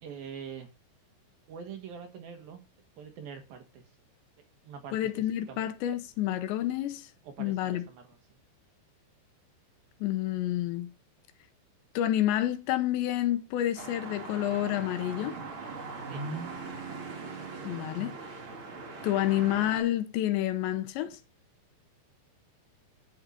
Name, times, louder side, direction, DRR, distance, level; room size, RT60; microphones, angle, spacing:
voice 1, 0.0-0.7 1.5-2.6 3.0-3.9 4.4-5.6 7.2-8.2 16.1-16.2, right 7 dB, 65° right, 2.7 m, -44 dB
voice 2, 4.9-7.1 7.4-7.8 10.0-10.9 12.0-15.3 17.6-18.2 19.0-21.2, left 13 dB, 80° left, 3.1 m, -29 dB
sound 1, 13.8-19.8, right 4 dB, 40° right, 2.0 m, -40 dB
11.5 x 5.5 x 6.9 m
omnidirectional pair, 5.3 m